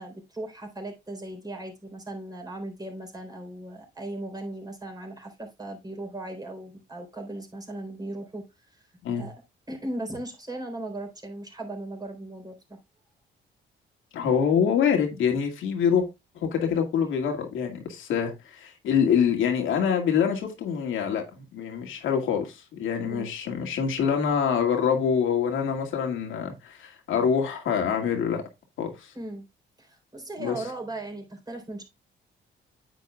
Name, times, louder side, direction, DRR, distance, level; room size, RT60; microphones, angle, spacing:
voice 1, 0.0-8.5 8.7-8.9 9.1-9.4 9.7-12.8 23.0-23.3 29.1-29.5 29.8-31.8, right 1 dB, 20° right, 3.8 m, -37 dB
voice 2, 14.1-16.1 16.3-28.4 28.8-29.1 30.4-30.6, left 7 dB, 80° left, 2.1 m, -25 dB
9.3 x 8.2 x 2.3 m
cardioid pair, 90°, 20 cm